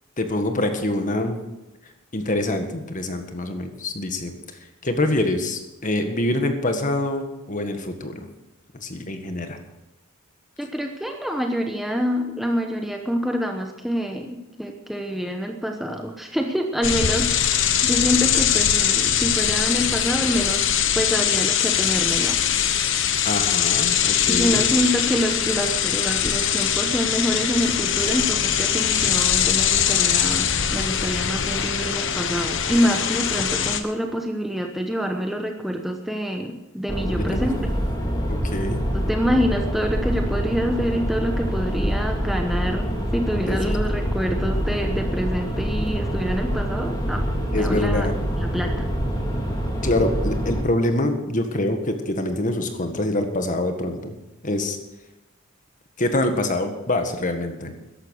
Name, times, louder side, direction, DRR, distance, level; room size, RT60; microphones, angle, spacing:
voice 1, 0.2-1.4 2.1-4.4 4.8-8.3 8.8-9.6 23.2-24.6 37.0-37.4 38.3-38.8 43.5-43.7 47.5-48.1 49.8-54.2 54.4-54.8 56.0-57.7, left 1 dB, 40° left, 6 dB, 1.7 m, -25 dB
voice 2, 10.6-20.7 20.9-22.6 24.3-37.6 38.9-47.2 47.6-48.1 48.4-48.8, equal, ahead, 3 dB, 1.0 m, -26 dB
sound 1, 16.8-33.8, left 9 dB, 65° left, 1.1 m, -22 dB
car inside driving fast diesel engine normal, 36.9-50.6, equal, 20° left, 2.7 m, -25 dB
14.0 x 11.5 x 6.5 m, 1.0 s
head